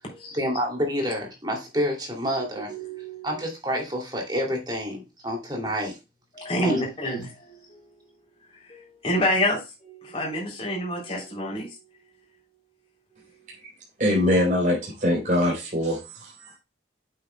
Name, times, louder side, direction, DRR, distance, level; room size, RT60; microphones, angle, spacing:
voice 1, 0.3-2.7 3.2-6.0 6.6-6.8, equal, 25° right, 1 dB, 2.6 m, -28 dB
voice 2, 2.4-3.4 6.3-7.8 8.7-11.8, equal, 30° left, -2 dB, 3.3 m, -28 dB
voice 3, 14.0-16.6, left 1 dB, 45° right, -3 dB, 3.8 m, -23 dB
8.7 x 7.8 x 2.2 m, 0.28 s
head